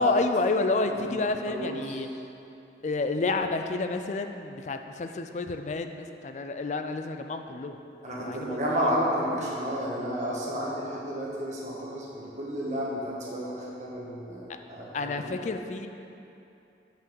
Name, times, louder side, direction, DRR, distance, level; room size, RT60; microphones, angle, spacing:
voice 1, 0.0-2.1 2.8-7.8 8.1-8.9 14.5-14.6 14.9-15.9, left 3 dB, 40° left, 7 dB, 0.4 m, -29 dB
voice 2, 1.5-2.0 8.0-15.4, equal, 40° right, -5 dB, 1.5 m, -32 dB
6.0 x 5.6 x 6.9 m, 2.8 s
head